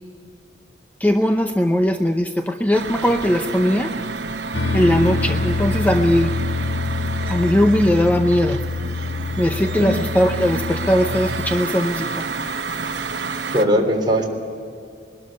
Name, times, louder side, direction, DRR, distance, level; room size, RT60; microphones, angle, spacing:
voice 1, 1.0-3.9 4.7-6.3 7.3-8.6 9.4-12.2, equal, 10° left, 5 dB, 0.7 m, -19 dB
sound 1, 2.7-13.6, right 4 dB, 75° right, 1.1 m, -29 dB
sound 2, 4.5-11.6, left 3 dB, 90° left, 0.9 m, -26 dB
voice 2, 13.5-14.3, equal, 25° right, 1 dB, 3.4 m, -19 dB
21.0 x 12.5 x 9.9 m, 2.4 s
head